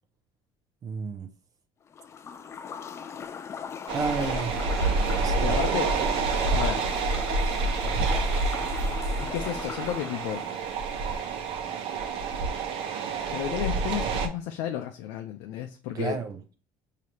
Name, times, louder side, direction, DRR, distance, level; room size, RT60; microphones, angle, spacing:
voice 1, 0.8-1.3 3.9-4.8 5.1-5.6 15.9-16.6, right 4 dB, 40° right, 0.6 m, -32 dB
sound 1, 1.9-10.6, left 7 dB, 25° left, 0.3 m, -39 dB
sound 2, 3.9-14.3, right 4 dB, 65° right, 0.9 m, -28 dB
voice 2, 5.4-5.9 6.5-6.9 9.2-10.4 13.3-16.2, left 11 dB, 80° left, 0.5 m, -32 dB
4.9 x 2.8 x 3.0 m
cardioid pair, 110°, 10 cm